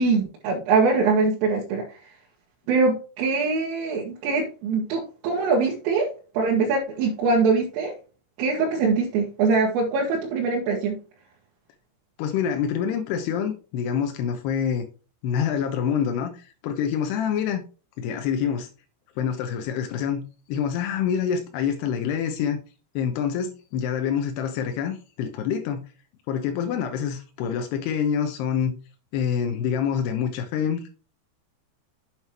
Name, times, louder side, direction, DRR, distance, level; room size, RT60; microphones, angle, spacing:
voice 1, 0.0-2.0 2.7-7.9 8.4-11.0, right 4 dB, 80° right, 4.1 m, -23 dB
voice 2, 12.2-14.9 15.2-17.6 18.0-18.7 19.2-22.6 23.0-25.8 26.3-28.8 29.1-30.9, left 8 dB, 80° left, 2.4 m, -26 dB
9.2 x 7.5 x 2.9 m
omnidirectional pair, 5.8 m